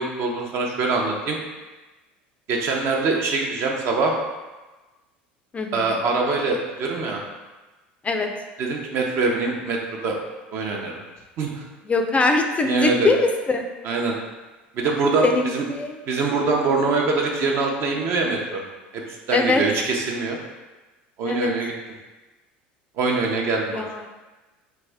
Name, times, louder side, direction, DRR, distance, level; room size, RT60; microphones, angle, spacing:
voice 1, 0.0-1.4 2.5-4.1 5.7-7.2 8.6-10.2 10.5-11.0 11.4-11.6 12.6-13.1 13.8-14.2 14.7-15.6 16.1-18.6 18.9-20.4 21.2-21.7 23.0-23.8, right 3 dB, 55° right, 0 dB, 0.7 m, -23 dB
voice 2, 5.5-5.9 8.0-8.3 11.9-13.7 15.2-16.0 19.3-19.6 21.3-21.5 23.7-24.0, left 3 dB, 25° left, 4 dB, 0.4 m, -22 dB
3.3 x 2.6 x 3.4 m, 1.2 s
hypercardioid pair, 80°, 5 cm